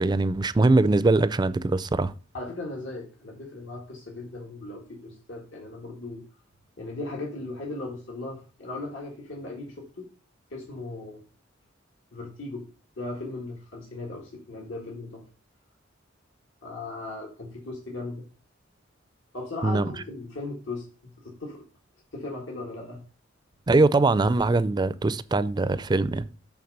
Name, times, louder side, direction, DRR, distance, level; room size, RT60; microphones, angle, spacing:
voice 1, 0.0-2.1 19.6-19.9 23.7-26.3, right 2 dB, 20° right, 0.4 m, -22 dB
voice 2, 2.3-6.2 6.8-10.1 10.5-11.2 12.1-12.7 13.0-15.2 16.6-18.2 19.3-20.8 21.2-21.6 22.1-23.0, left 2 dB, 80° left, 1.8 m, -37 dB
8.6 x 3.7 x 5.3 m
head